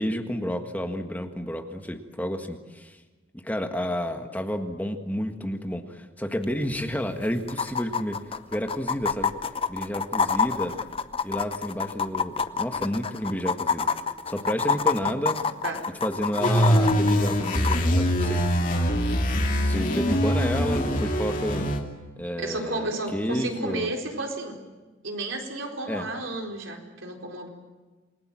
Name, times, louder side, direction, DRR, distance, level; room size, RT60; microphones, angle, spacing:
voice 1, 0.0-3.0 3.4-8.2 8.5-9.3 9.7-10.8 11.2-13.9 14.3-15.4 16.0-18.4 19.6-21.7 22.2-23.9 25.9-26.1, equal, 10° left, 5 dB, 1.6 m, -30 dB
sound 1, 6.4-6.5 6.8-6.9 7.5-17.8 19.4-19.5, left 5 dB, 30° left, 0.8 m, -27 dB
sound 2, 16.4-21.8, equal, 45° left, 2.8 m, -23 dB
voice 2, 19.9-20.2 22.4-24.6 25.0-27.5, right 2 dB, 90° right, 2 dB, 4.2 m, -32 dB
27.5 x 21.0 x 7.6 m, 1.3 s
head